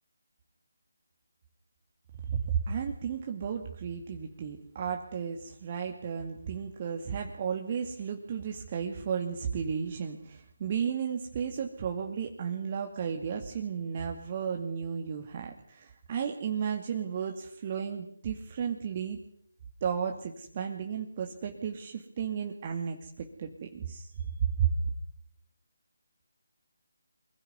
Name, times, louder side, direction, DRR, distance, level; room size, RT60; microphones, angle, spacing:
voice 1, 2.3-19.2 19.8-24.7, right 7 dB, 35° right, 3 dB, 2.3 m, -33 dB
24.0 x 16.5 x 9.5 m, 0.63 s
figure-of-eight pair, 160°, 0 cm